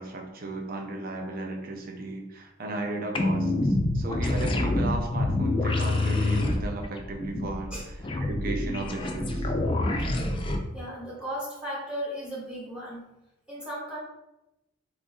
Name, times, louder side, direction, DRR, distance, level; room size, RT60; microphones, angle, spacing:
voice 1, 0.0-9.5, right 2 dB, 45° right, 2 dB, 0.5 m, -35 dB
sound 1, 3.1-10.6, left 2 dB, 25° left, 0.3 m, -27 dB
voice 2, 10.7-13.0 13.5-14.0, equal, 5° right, -6 dB, 1.0 m, -35 dB
2.9 x 2.5 x 3.6 m, 0.93 s
head